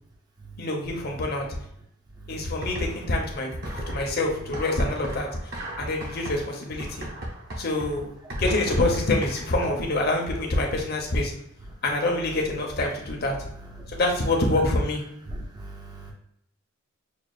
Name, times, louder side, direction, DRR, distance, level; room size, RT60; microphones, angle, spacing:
voice 1, 0.6-1.5 2.3-5.3 5.8-7.1 7.6-8.1 8.4-11.3 11.8-13.4 13.9-15.0, left 2 dB, 45° left, 0 dB, 0.8 m, -26 dB
voice 2, 2.2-2.5 3.9-4.2 9.6-9.7 13.7-14.0 15.3-16.1, right 2 dB, 20° right, -1 dB, 0.5 m, -40 dB
sound 1, 2.6-3.2 3.5-10.0, right 1 dB, 45° right, 0.7 m, -37 dB
6.2 x 2.4 x 2.4 m, 0.73 s
head